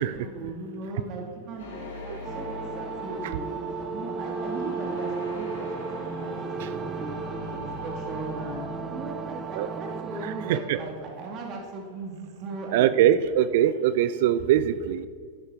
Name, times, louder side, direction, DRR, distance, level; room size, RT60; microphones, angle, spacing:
voice 1, 0.0-3.5 3.9-13.1 14.4-14.5, right 3 dB, 45° right, 1 dB, 1.7 m, -38 dB
sound 1, 1.6-9.5, right 1 dB, 75° left, 3.1 m, -37 dB
sound 2, 2.2-10.6, right 5 dB, 20° right, 0.6 m, -36 dB
voice 2, 10.2-10.8 12.7-15.1, right 11 dB, 60° right, 15 dB, 0.4 m, -23 dB
11.5 x 9.8 x 3.5 m, 2.1 s
hypercardioid pair, 95°, 0 cm